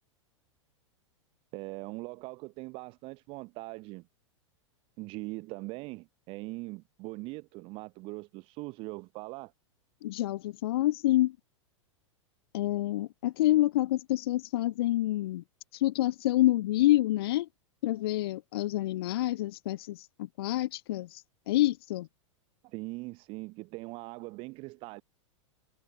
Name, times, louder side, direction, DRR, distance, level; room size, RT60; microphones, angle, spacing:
voice 1, 1.5-4.1 5.0-9.5 22.6-25.0, right 24 dB, 35° right, 0.7 m, -41 dB
voice 2, 10.0-11.4 12.5-15.4 15.7-17.5 17.8-22.1, left 15 dB, 50° left, 0.4 m, -27 dB
figure-of-eight pair, 95°, 16 cm